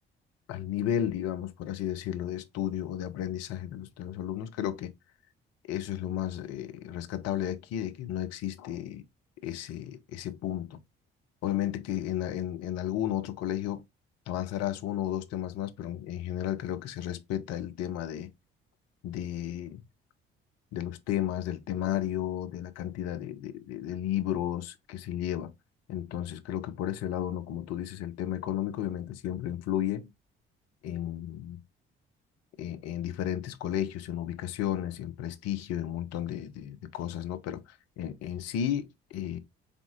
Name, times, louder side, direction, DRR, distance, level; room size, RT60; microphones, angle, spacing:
voice 1, 0.5-4.9 5.7-9.0 9.4-10.8 11.4-13.8 14.3-18.3 19.0-19.8 20.7-25.5 25.9-30.1 30.8-31.6 32.6-39.4, left 11 dB, 60° left, 0.6 m, -33 dB
5.0 x 3.6 x 2.4 m
figure-of-eight pair, 45°, 29 cm